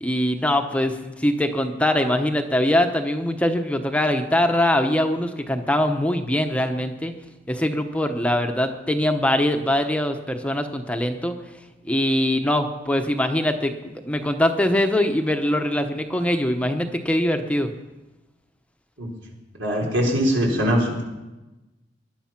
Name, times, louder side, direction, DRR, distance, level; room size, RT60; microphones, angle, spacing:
voice 1, 0.0-7.1 7.5-11.3 11.8-17.7, left 1 dB, 5° left, 5 dB, 0.9 m, -22 dB
voice 2, 19.6-21.0, equal, 80° right, 0 dB, 4.2 m, -21 dB
19.5 x 11.5 x 5.9 m, 1.1 s
head